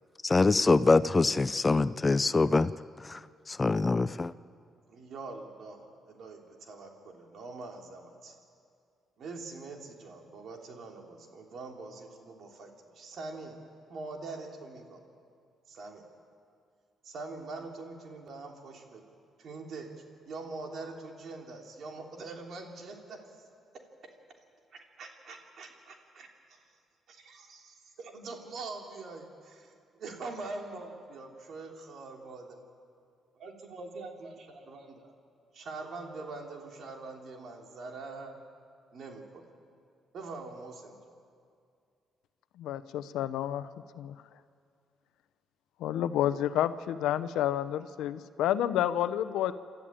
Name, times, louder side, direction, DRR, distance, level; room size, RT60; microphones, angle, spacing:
voice 1, 0.2-2.7 3.1-3.2 3.5-4.3, left 3 dB, 25° left, 15 dB, 0.5 m, -24 dB
voice 2, 4.9-8.3 9.2-13.6 13.9-15.0 15.7-16.0 17.0-19.0 19.4-19.9 20.3-23.2 24.7-26.6 27.1-29.7 30.0-32.6 33.4-35.1 35.5-38.3 38.9-39.5 40.1-41.0, right 3 dB, 60° right, 2 dB, 3.3 m, -43 dB
voice 3, 42.6-43.7 44.0-44.2 45.8-49.5, left 11 dB, 90° left, 13 dB, 0.8 m, -29 dB
28.0 x 13.0 x 8.8 m, 2.3 s
cardioid pair, 90°, 0 cm